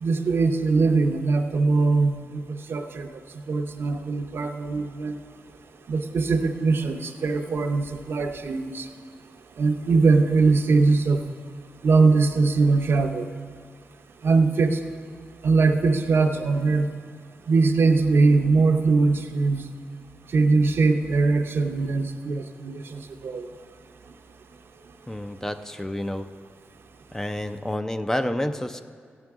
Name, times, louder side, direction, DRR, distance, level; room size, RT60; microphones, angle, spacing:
voice 1, 0.0-3.1 3.5-5.1 5.9-8.9 9.6-11.2 11.8-13.3 14.2-14.8 15.4-16.9 17.5-19.7 20.3-23.5, right 3 dB, 65° right, 6 dB, 0.7 m, -21 dB
voice 2, 25.1-26.3 27.1-28.8, left 1 dB, 10° left, 8 dB, 0.4 m, -29 dB
14.5 x 9.0 x 3.6 m, 2.1 s
cardioid pair, 80°, 4 cm